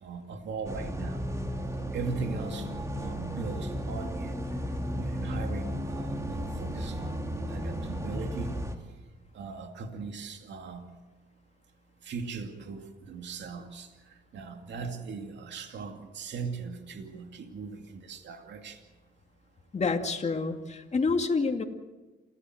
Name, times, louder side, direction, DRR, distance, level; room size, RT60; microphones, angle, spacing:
voice 1, 0.0-1.2 1.9-4.4 4.9-7.2 7.5-8.6 9.3-10.9 12.0-13.9 14.3-18.8, right 5 dB, 65° right, 4 dB, 2.5 m, -39 dB
sound 1, 0.6-8.7, equal, 15° right, 2.6 m, -34 dB
voice 2, 19.7-21.6, left 4 dB, 35° left, 4 dB, 2.4 m, -28 dB
28.0 x 15.5 x 8.0 m, 1.2 s
cardioid pair, 90°, 20 cm